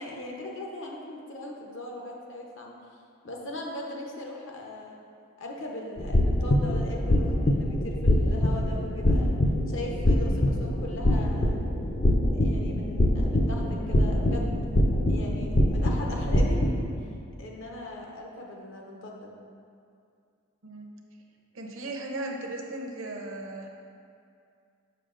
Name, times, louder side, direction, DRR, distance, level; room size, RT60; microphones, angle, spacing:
voice 1, 0.0-2.8 3.2-5.0 5.4-9.4 9.7-11.6 12.3-14.5 15.1-16.7 17.4-19.3, left 1 dB, 60° left, -1 dB, 0.8 m, -39 dB
sound 1, 6.0-16.8, left 1 dB, 40° left, 0.5 m, -24 dB
voice 2, 21.5-23.7, right 2 dB, 70° right, 1 dB, 0.7 m, -36 dB
6.8 x 5.7 x 2.5 m, 2.4 s
head